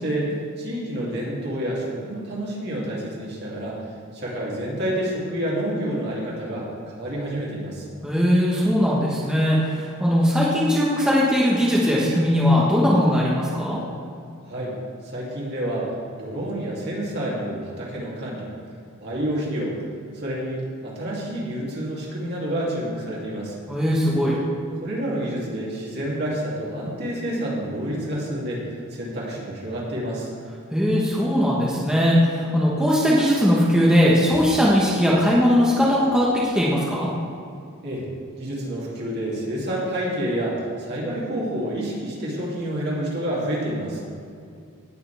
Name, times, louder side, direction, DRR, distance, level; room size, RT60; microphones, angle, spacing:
voice 1, 0.0-3.8 4.1-7.9 14.4-14.7 15.1-18.5 19.0-19.7 20.1-23.6 24.8-30.3 37.8-38.0 38.4-44.0, right 1 dB, 50° right, -5 dB, 2.8 m, -28 dB
voice 2, 8.0-13.8 23.7-24.4 30.7-37.1, equal, 5° right, -7 dB, 1.3 m, -19 dB
18.0 x 6.9 x 3.5 m, 2.4 s
head